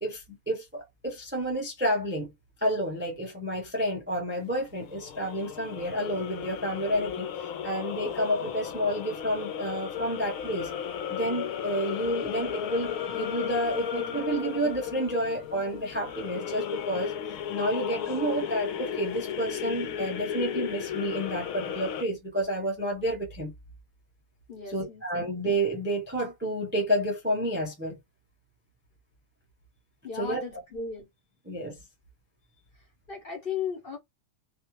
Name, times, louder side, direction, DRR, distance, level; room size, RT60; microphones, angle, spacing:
voice 1, 0.0-2.3 2.6-10.7 11.1-23.5 24.7-28.0 30.1-30.4 31.5-31.8, right 1 dB, 15° right, 0.4 m, -30 dB
sound 1, 4.4-22.0, left 9 dB, 75° left, 1.0 m, -34 dB
voice 2, 24.5-25.3 30.0-31.1 32.7-34.0, left 6 dB, 45° left, 0.9 m, -36 dB
2.4 x 2.3 x 2.9 m
omnidirectional pair, 1.5 m